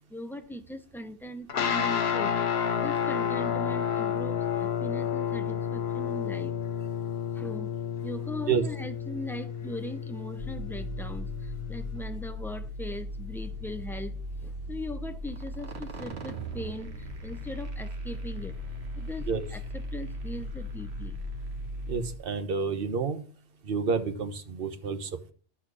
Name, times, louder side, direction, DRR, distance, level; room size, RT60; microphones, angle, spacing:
voice 1, 0.1-2.4 2.8-6.6 7.3-7.7 8.0-18.6 18.9-21.2, left 1 dB, ahead, 0.7 m, -40 dB
sound 1, 1.5-12.0, left 8 dB, 75° left, 1.1 m, -31 dB
sound 2, 10.4-22.2, equal, 80° right, 1.6 m, -37 dB
voice 2, 21.9-23.2 23.6-25.3, right 5 dB, 60° right, 1.2 m, -29 dB
12.0 x 4.6 x 6.1 m
omnidirectional pair, 1.1 m